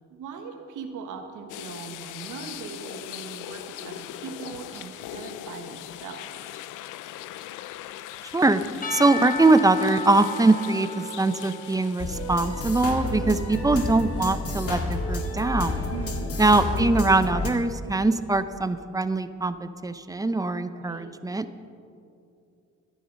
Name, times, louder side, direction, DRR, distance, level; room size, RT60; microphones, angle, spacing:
voice 1, 0.1-6.3 13.3-13.7 15.9-16.4 20.7-21.1, right 6 dB, 80° right, 4 dB, 1.3 m, -40 dB
sound 1, 1.5-13.7 14.1-14.3 16.6-16.7, left 13 dB, 85° left, 0.5 m, -40 dB
Percussion / Church bell, 8.8-13.0, left 3 dB, 30° left, 1.0 m, -35 dB
voice 2, 8.9-15.9 16.4-21.5, right 2 dB, 10° right, 11 dB, 0.6 m, -22 dB
sound 2, 12.0-17.5, left 2 dB, 50° left, 1.8 m, -30 dB
14.0 x 10.0 x 5.4 m, 2.5 s
cardioid pair, 90°, 30 cm